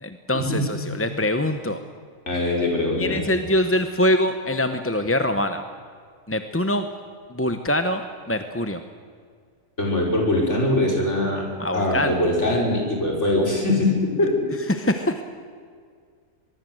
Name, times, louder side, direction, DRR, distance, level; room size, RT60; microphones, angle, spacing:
voice 1, 0.0-1.8 3.0-5.6 6.3-6.9 7.3-8.8 11.6-12.2 14.7-15.2, left 1 dB, 10° left, 8 dB, 0.8 m, -24 dB
voice 2, 2.3-3.2 9.8-11.4 11.7-14.5, left 1 dB, 55° left, -1 dB, 5.8 m, -22 dB
23.0 x 22.5 x 7.9 m, 2.1 s
omnidirectional pair, 1.4 m